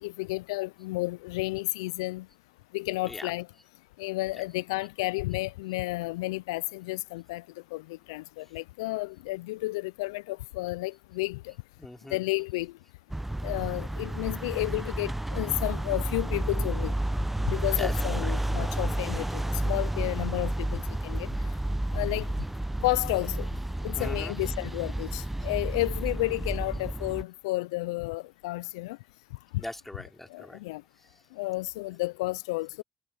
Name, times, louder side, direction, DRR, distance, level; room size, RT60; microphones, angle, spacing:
voice 1, 0.0-2.3 2.7-3.5 4.0-7.4 7.7-11.5 12.1-12.7 13.4-16.9 17.4-21.3 21.9-22.3 22.8-23.5 23.8-29.0 30.3-30.8 31.4-32.8, left 21 dB, 85° left, 0.4 m, -32 dB
voice 2, 11.8-12.2 17.8-18.3 24.0-24.4 29.6-30.6, left 1 dB, 10° left, 3.7 m, -40 dB
sound 1, 13.1-27.2, right 1 dB, 10° right, 0.7 m, -31 dB
hypercardioid pair, 60°, 2 cm